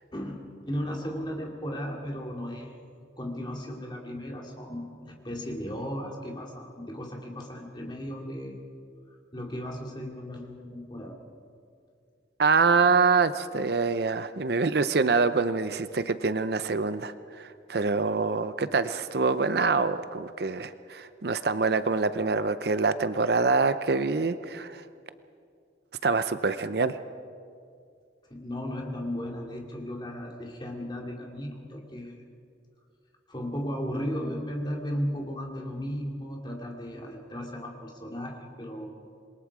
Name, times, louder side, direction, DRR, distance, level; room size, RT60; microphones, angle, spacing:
voice 1, 0.7-2.8 3.2-8.6 9.3-11.2 28.3-32.2 33.3-38.9, equal, 25° left, 0 dB, 2.5 m, -35 dB
voice 2, 12.4-24.8 26.0-27.0, right 4 dB, 55° right, 12 dB, 0.6 m, -25 dB
27.0 x 21.5 x 4.9 m, 2.4 s
head